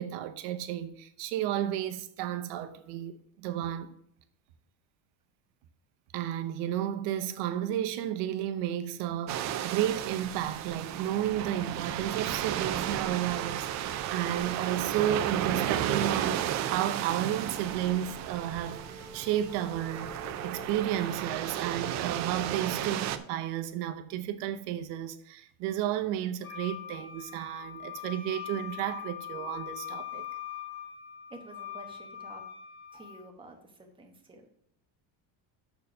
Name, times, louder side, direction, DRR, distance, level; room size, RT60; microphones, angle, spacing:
voice 1, 0.0-3.9 6.1-20.2 20.4-30.3, right 11 dB, 70° right, 0.9 m, -32 dB
sound 1, 9.3-23.2, right 11 dB, 40° right, 0.5 m, -33 dB
sound 2, 12.5-21.0, left 1 dB, 10° left, 1.8 m, -50 dB
Wind instrument woodwind instrument, 26.4-33.2, left 10 dB, 55° left, 3.7 m, -42 dB
voice 2, 31.3-32.4 32.9-34.5, right 2 dB, 10° right, 1.0 m, -50 dB
6.8 x 4.6 x 6.6 m
cardioid pair, 180°, 44 cm